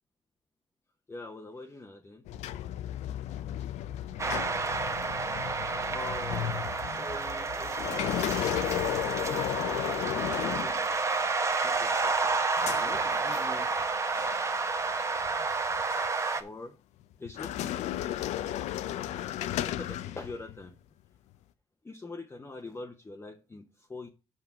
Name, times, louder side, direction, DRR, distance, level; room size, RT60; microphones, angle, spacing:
voice 1, 1.1-2.2 5.9-9.5 10.1-10.7 11.6-12.4 12.8-13.7 16.3-16.8 17.2-17.8 19.3-20.8 21.8-24.1, left 3 dB, 20° left, 0.8 m, -44 dB
sound 1, 2.3-11.3 11.7-13.9 14.2-14.4 15.1-16.1 17.2-20.6, left 12 dB, 85° left, 0.5 m, -35 dB
sound 2, 4.2-16.4, right 4 dB, 25° right, 1.0 m, -30 dB
6.1 x 5.2 x 5.9 m
cardioid pair, 110°, 12 cm